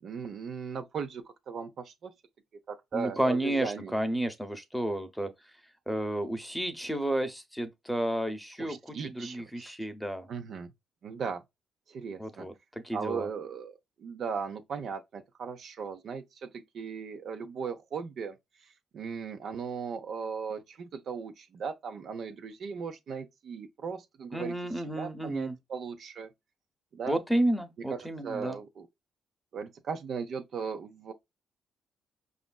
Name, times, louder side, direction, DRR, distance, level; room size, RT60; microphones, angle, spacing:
voice 1, 0.0-2.1 2.7-3.9 8.6-9.6 10.3-10.7 11.0-11.4 11.9-12.5 12.9-18.4 18.6-24.5 24.9-26.3 26.9-27.2 27.9-28.9 29.5-31.1, right 6 dB, 60° right, 0.6 m, -37 dB
voice 2, 2.9-5.3 5.9-8.8 9.0-10.3 12.2-12.5 12.8-13.3 24.3-25.6 27.1-28.6, right 1 dB, ahead, 0.7 m, -31 dB
5.0 x 2.5 x 2.2 m
cardioid pair, 90°, 0 cm